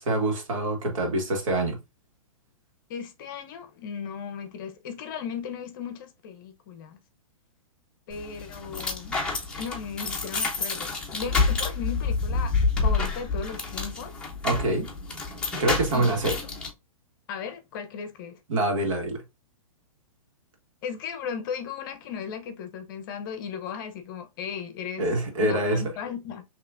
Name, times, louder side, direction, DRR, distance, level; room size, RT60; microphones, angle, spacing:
voice 1, 0.0-1.8 14.4-14.9 15.6-16.4 18.5-19.2 25.0-25.9, right 1 dB, 60° right, 1.8 m, -25 dB
voice 2, 2.9-7.0 8.1-9.2 9.6-12.5 12.8-14.1 15.9-16.5 17.3-18.4 20.8-25.1 25.4-26.4, left 7 dB, 35° left, 0.8 m, -36 dB
sound 1, 8.1-16.7, left 4 dB, 5° left, 0.8 m, -28 dB
5.7 x 3.0 x 2.5 m
hypercardioid pair, 160°, 18 cm